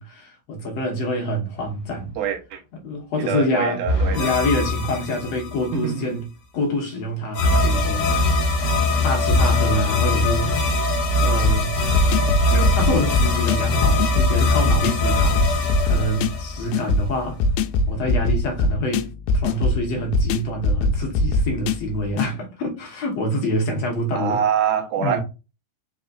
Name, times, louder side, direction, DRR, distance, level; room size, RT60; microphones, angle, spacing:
voice 1, 0.0-2.1 2.7-3.9 4.2-6.3 6.5-8.5 9.0-10.8 11.2-11.8 12.5-17.4 17.9-24.4 25.0-25.2, equal, 65° left, 1.7 m, -26 dB
voice 2, 2.2-2.6 3.2-4.3 5.7-6.2 24.1-25.2, right 8 dB, 75° right, 2.1 m, -24 dB
sound 1, 3.8-5.7 7.3-17.1, left 2 dB, 50° left, 2.0 m, -21 dB
sound 2, 11.4-22.3, left 2 dB, 90° left, 2.4 m, -22 dB
5.3 x 4.0 x 2.4 m
omnidirectional pair, 4.2 m